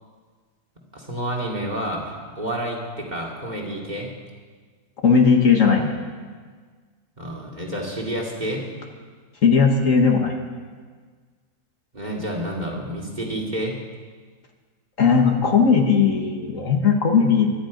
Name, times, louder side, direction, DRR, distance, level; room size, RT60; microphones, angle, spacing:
voice 1, 0.9-4.1 7.2-8.7 11.9-13.8, right 1 dB, 25° right, -1 dB, 2.6 m, -29 dB
voice 2, 5.0-5.9 9.4-10.4 15.0-17.5, left 5 dB, 60° left, 2 dB, 1.8 m, -17 dB
25.0 x 10.5 x 5.2 m, 1.5 s
omnidirectional pair, 1.6 m